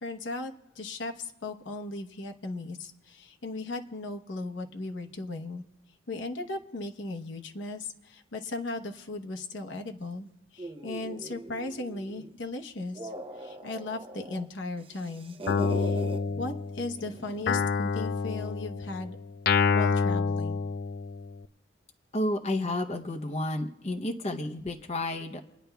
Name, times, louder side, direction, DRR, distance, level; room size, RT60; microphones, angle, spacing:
voice 1, 0.0-5.6 6.1-15.4 15.7-16.0 16.3-19.2 19.7-20.6, left 2 dB, 70° left, 4 dB, 0.9 m, -37 dB
sound 1, 10.6-12.3 12.8-14.4 14.8-16.2 17.0-17.8, right 1 dB, 30° right, 0.8 m, -41 dB
Guitar, 15.5-17.0 17.5-21.4, left 5 dB, 50° left, 0.3 m, -28 dB
voice 2, 22.1-25.4, left 1 dB, 35° left, 4 dB, 0.7 m, -31 dB
29.5 x 10.0 x 2.3 m, 0.95 s
head